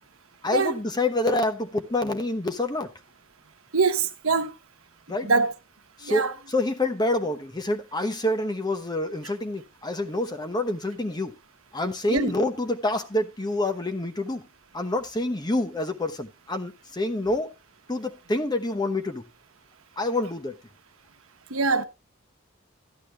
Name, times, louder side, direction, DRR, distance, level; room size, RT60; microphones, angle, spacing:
voice 1, 0.4-2.9 5.1-5.3 6.0-11.4 11.7-14.5 14.7-17.5 17.9-19.2 20.0-20.6, left 2 dB, 20° left, 0.9 m, -27 dB
voice 2, 3.7-4.5 5.2-5.5 6.0-6.3 12.1-12.3 21.5-21.8, right 4 dB, 85° right, 1.1 m, -23 dB
13.5 x 10.5 x 2.4 m
head